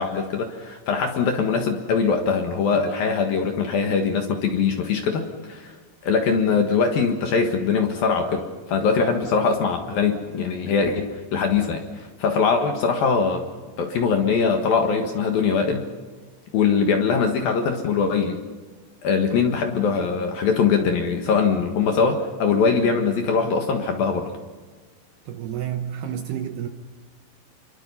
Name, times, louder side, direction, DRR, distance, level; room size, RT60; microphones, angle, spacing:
voice 1, 0.0-5.7 6.0-13.4 13.8-15.9 16.5-18.4 19.0-24.2, left 5 dB, 60° left, 2.7 m, -22 dB
voice 2, 25.3-26.7, right 10 dB, 70° right, 2.6 m, -30 dB
28.0 x 23.5 x 5.6 m
omnidirectional pair, 5.7 m